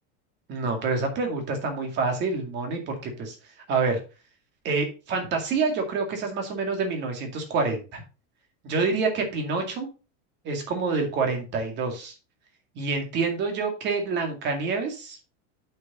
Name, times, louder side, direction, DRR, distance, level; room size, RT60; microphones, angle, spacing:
voice 1, 0.5-3.4 3.7-4.0 4.6-8.0 8.6-9.9 10.4-12.1 12.8-15.2, right 4 dB, 30° right, 4 dB, 2.2 m, -27 dB
8.0 x 6.1 x 4.2 m, 0.31 s
supercardioid pair, 175°, 38 cm